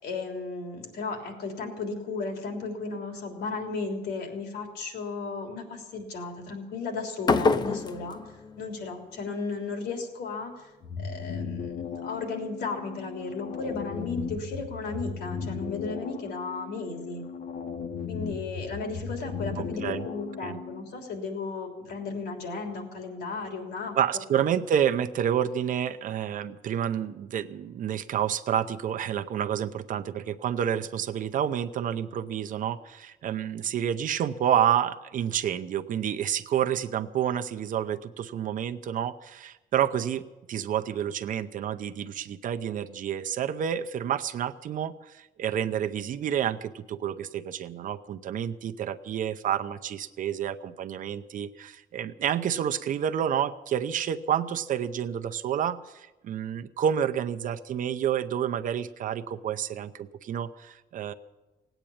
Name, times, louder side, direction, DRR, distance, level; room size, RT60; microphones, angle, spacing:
voice 1, 0.0-8.2 8.6-10.7 11.0-17.2 18.1-24.0, left 4 dB, 90° left, 2 dB, 3.4 m, -35 dB
sound 1, 7.2-9.3, left 4 dB, 25° left, 0.6 m, -27 dB
sound 2, 10.8-20.8, left 6 dB, 55° left, 1.0 m, -36 dB
voice 2, 19.6-20.0 20.4-20.6 24.0-40.2 40.5-61.1, right 9 dB, 55° right, 10 dB, 0.7 m, -29 dB
18.0 x 9.1 x 8.7 m, 1.1 s
cardioid pair, 175°, 17 cm